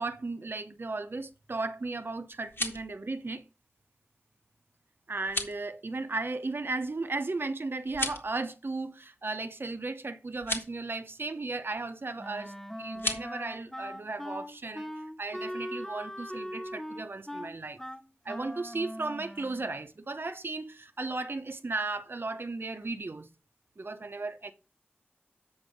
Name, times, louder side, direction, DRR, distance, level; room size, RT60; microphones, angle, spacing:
voice 1, 0.0-3.4 5.1-14.9 15.2-17.8 18.2-23.3 23.8-24.5, right 3 dB, 65° right, 0.8 m, -35 dB
sound 1, 2.3-2.9 5.2-5.6 7.9-8.3 10.3-10.7 12.9-13.2, left 2 dB, 70° left, 1.7 m, -34 dB
Wind instrument woodwind instrument, 12.2-19.8, equal, 5° left, 0.7 m, -40 dB
7.9 x 5.4 x 5.1 m
wide cardioid pair, 50°, 4 cm